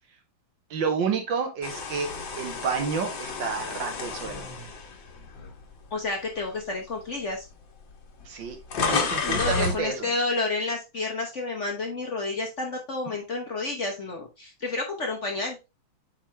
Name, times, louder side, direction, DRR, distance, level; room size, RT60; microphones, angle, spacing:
voice 1, 0.7-4.5 8.3-8.6 8.9-10.1, right 5 dB, 70° right, 5 dB, 1.8 m, -30 dB
sound 1, 1.6-5.9 6.4-6.6 7.5-7.6 7.8-9.8, left 4 dB, 70° left, 2.0 m, -31 dB
voice 2, 5.9-7.4 9.2-15.6, left 3 dB, 45° left, 1 dB, 1.1 m, -30 dB
8.0 x 3.7 x 3.2 m, 0.26 s
omnidirectional pair, 2.2 m